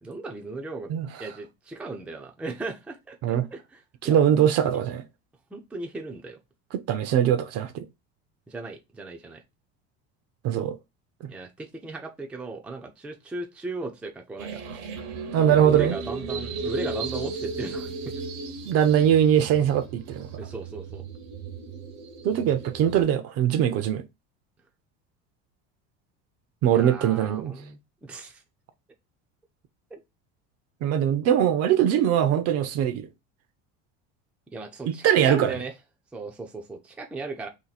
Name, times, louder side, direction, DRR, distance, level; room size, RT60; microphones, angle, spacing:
voice 1, 0.0-0.9 1.2-4.8 5.5-6.4 8.5-9.4 11.3-14.8 15.4-18.2 20.4-21.0 26.7-28.4 29.9-30.0 34.5-35.7 36.1-37.5, right 3 dB, 5° right, 0.4 m, -37 dB
voice 2, 4.0-5.0 6.7-7.9 10.4-10.8 11.2-11.3 15.3-15.9 18.7-20.3 22.2-24.0 26.6-27.5 30.8-33.1 34.9-35.5, right 9 dB, 50° right, 0.6 m, -22 dB
sound 1, 14.4-23.0, right 4 dB, 70° right, 0.9 m, -35 dB
2.8 x 2.6 x 4.0 m
cardioid pair, 135°, 33 cm